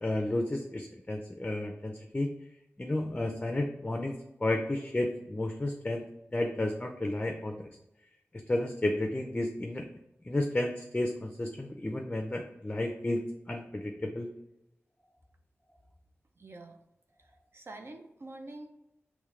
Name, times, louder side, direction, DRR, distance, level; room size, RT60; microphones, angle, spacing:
voice 1, 0.0-2.3 2.8-6.0 6.3-7.7 8.5-9.9 10.2-14.3, left 1 dB, 25° left, 4 dB, 0.4 m, -32 dB
voice 2, 16.4-16.8 17.2-18.7, right 2 dB, 60° right, 4 dB, 0.5 m, -46 dB
3.2 x 3.1 x 3.6 m, 0.87 s
wide cardioid pair, 70°, 5 cm